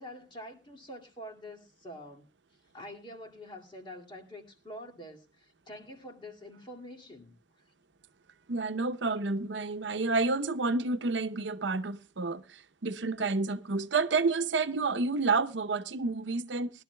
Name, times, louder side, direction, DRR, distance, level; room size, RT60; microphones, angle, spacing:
voice 1, 0.0-2.3 2.7-7.3, equal, 30° left, 2.2 m, -46 dB
voice 2, 8.5-16.7, right 3 dB, 90° right, 0.8 m, -30 dB
20.5 x 12.5 x 2.2 m
head